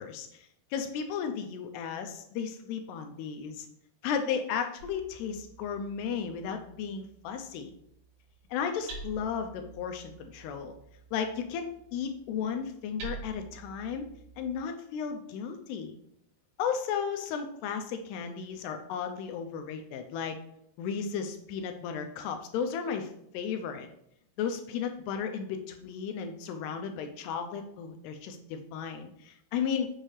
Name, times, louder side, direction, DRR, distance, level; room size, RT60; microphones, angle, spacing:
voice 1, 0.0-3.7 4.0-7.7 8.5-10.7 11.1-14.1 14.4-16.0 16.6-20.4 20.8-23.9 24.4-29.9, left 7 dB, 80° left, 5 dB, 2.6 m, -34 dB
Hammer, 4.8-14.5, right 3 dB, 60° right, 4.5 m, -49 dB
8.0 x 6.5 x 3.2 m, 0.74 s
omnidirectional pair, 5.1 m